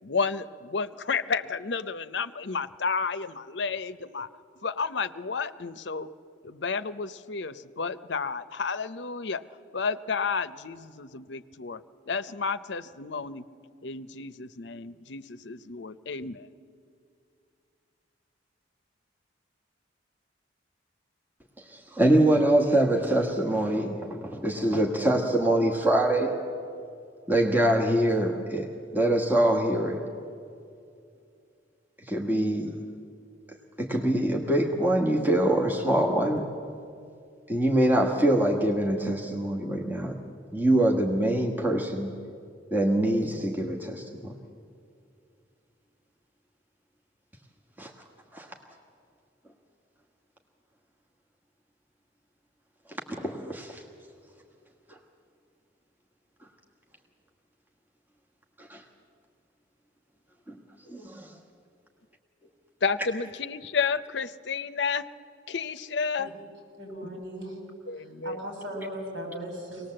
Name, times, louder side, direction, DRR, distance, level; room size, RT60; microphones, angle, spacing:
voice 1, 0.0-4.3 4.6-6.1 6.4-9.4 9.7-13.5 13.8-16.5 62.8-65.1 65.5-66.3 67.0-67.1 67.9-68.4, left 5 dB, 65° left, 12 dB, 0.7 m, -31 dB
voice 2, 21.7-26.3 27.3-28.7 28.9-30.0 32.1-32.7 33.8-36.5 37.5-40.2 40.5-42.1 42.7-44.3 47.8-47.9 48.3-48.5 53.1-53.8 58.6-58.8 60.5-60.6 60.9-61.3, right 1 dB, 10° right, 0 dB, 1.5 m, -24 dB
voice 3, 66.8-67.6 68.0-69.9, right 1 dB, 85° right, 1 dB, 6.2 m, -38 dB
24.0 x 19.0 x 7.7 m, 2.4 s
head